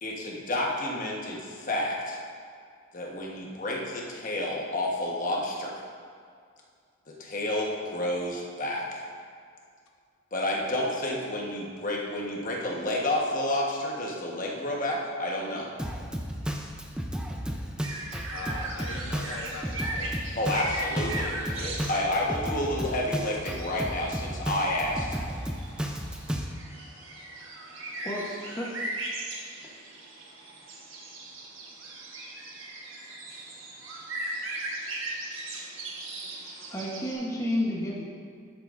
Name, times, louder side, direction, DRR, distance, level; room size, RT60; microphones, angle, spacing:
voice 1, 0.0-2.2 2.9-5.8 7.1-9.0 10.3-15.7 20.4-21.3 21.6-25.1, left 1 dB, 40° left, -2 dB, 1.2 m, -30 dB
Drum kit, 15.8-26.4, equal, 5° right, 0.5 m, -33 dB
sound 1, 17.8-37.1, right 2 dB, 70° right, 1.3 m, -38 dB
voice 2, 18.3-20.6 21.2-21.9 23.2-23.4, left 2 dB, 80° left, 2 dB, 0.7 m, -42 dB
voice 3, 28.0-28.8 36.7-38.0, left 1 dB, 15° left, -4 dB, 1.0 m, -31 dB
11.0 x 8.4 x 2.6 m, 2.2 s
head